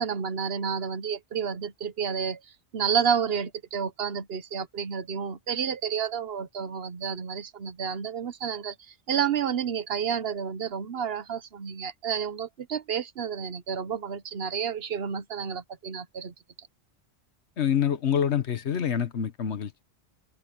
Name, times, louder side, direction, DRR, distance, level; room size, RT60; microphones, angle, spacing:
voice 1, 0.0-2.4 2.7-8.7 9.1-16.3, right 7 dB, 65° right, 1.1 m, -30 dB
voice 2, 17.6-19.8, left 8 dB, 80° left, 1.3 m, -26 dB
omnidirectional pair, 1.1 m